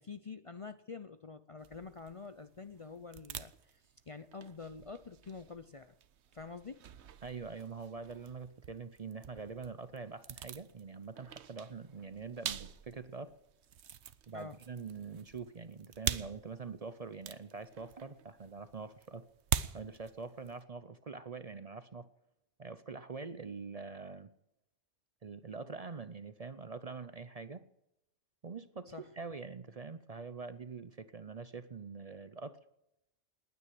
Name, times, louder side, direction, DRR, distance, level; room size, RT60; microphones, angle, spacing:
voice 1, 0.0-6.0 6.3-6.9 14.3-14.6 28.9-29.1, left 4 dB, 40° left, 11 dB, 0.5 m, -47 dB
sound 1, 1.6-20.6, right 9 dB, 75° right, 1.1 m, -44 dB
voice 2, 7.2-13.4 14.3-19.3 19.7-22.1 22.6-24.3 25.2-27.6 28.4-32.6, right 4 dB, 40° right, 13 dB, 0.6 m, -44 dB
19.5 x 9.6 x 7.6 m, 0.86 s
omnidirectional pair, 1.2 m